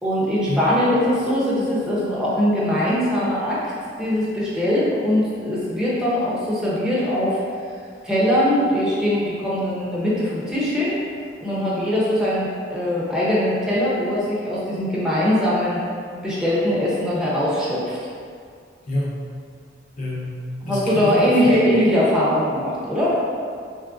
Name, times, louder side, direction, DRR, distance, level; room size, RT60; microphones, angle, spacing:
voice 1, 0.0-3.6 4.0-7.4 8.0-11.0 11.4-15.8 16.2-18.0 20.6-23.1, equal, 5° right, -8 dB, 0.6 m, -21 dB
voice 2, 18.9-19.2 20.0-20.4 20.7-21.5, left 1 dB, 45° left, -7 dB, 0.6 m, -27 dB
3.1 x 2.4 x 2.4 m, 2.2 s
head